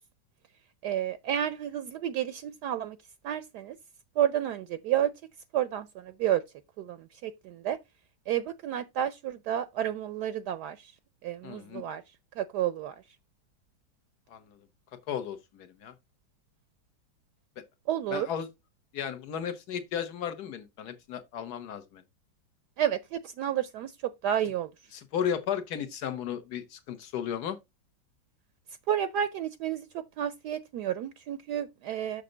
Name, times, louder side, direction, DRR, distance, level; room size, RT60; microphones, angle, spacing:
voice 1, 0.8-3.0 3.2-3.8 4.2-5.1 5.5-6.4 6.8-7.8 8.3-10.9 11.2-12.0 12.4-12.9 17.9-18.3 22.8-24.7 28.9-32.2, right 10 dB, 70° right, 1.0 m, -31 dB
voice 2, 11.4-11.8 14.3-14.6 15.1-15.9 18.1-18.5 18.9-22.0 24.9-27.6, left 8 dB, 60° left, 1.5 m, -34 dB
6.7 x 6.6 x 3.8 m
omnidirectional pair, 2.0 m